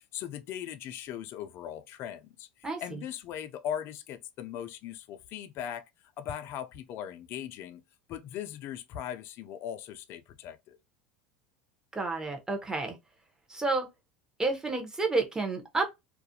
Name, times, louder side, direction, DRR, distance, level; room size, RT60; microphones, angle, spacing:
voice 1, 0.0-5.9 6.2-7.8 8.1-10.7, left 10 dB, 50° left, 0.4 m, -39 dB
voice 2, 11.9-13.0 13.5-13.9 14.4-16.0, right 3 dB, 15° right, 0.7 m, -30 dB
2.4 x 2.1 x 2.7 m
supercardioid pair, 100°, 5 cm